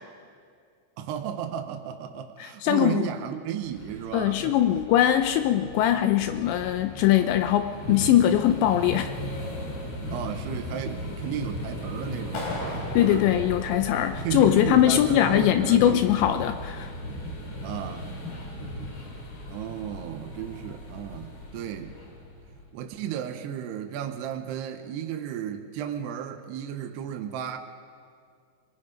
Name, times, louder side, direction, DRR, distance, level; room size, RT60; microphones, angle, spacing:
voice 1, 1.0-4.6 10.1-13.3 14.2-16.0 17.6-18.1 19.5-22.0 22.7-27.6, right 10 dB, 75° right, 5 dB, 2.7 m, -34 dB
voice 2, 2.4-3.1 4.1-9.1 12.9-16.9, left 11 dB, 80° left, 8 dB, 2.7 m, -21 dB
sound 1, 3.6-22.7, equal, 30° left, 4.7 m, -37 dB
Clapping, 12.3-14.4, left 3 dB, 60° left, 5.8 m, -37 dB
23.5 x 23.0 x 5.2 m, 2.2 s
omnidirectional pair, 5.6 m